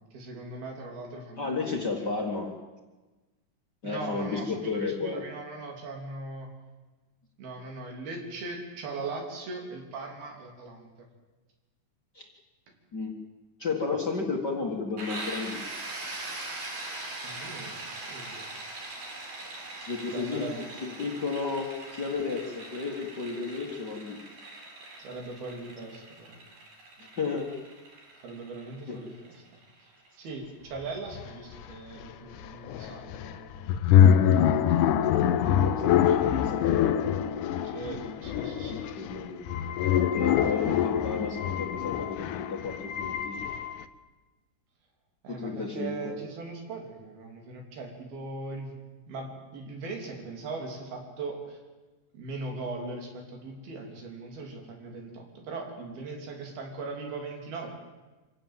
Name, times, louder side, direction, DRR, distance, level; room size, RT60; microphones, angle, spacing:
voice 1, 0.1-2.1 3.8-6.5 7.4-10.9 17.2-18.5 20.1-20.6 25.0-26.4 28.2-29.4 29.8-29.9 30.2-33.5 37.6-38.8 45.2-48.7 49.1-51.6 52.1-57.7, right 3 dB, 85° right, 2 dB, 5.2 m, -39 dB
voice 2, 1.4-2.5 3.8-5.2 12.1-12.3 12.9-13.1 13.6-15.6 19.4-20.5 20.8-24.2 27.0-27.5 28.9-29.0 34.4-37.3 38.9-39.4 40.1-43.4 45.3-46.1, left 4 dB, 35° left, 0 dB, 1.8 m, -33 dB
sound 1, 15.0-30.6, right 2 dB, 60° right, 5.4 m, -41 dB
sound 2, 30.8-30.9 31.1-43.8, left 9 dB, 70° left, 2.1 m, -25 dB
26.0 x 17.0 x 7.5 m, 1.2 s
omnidirectional pair, 4.3 m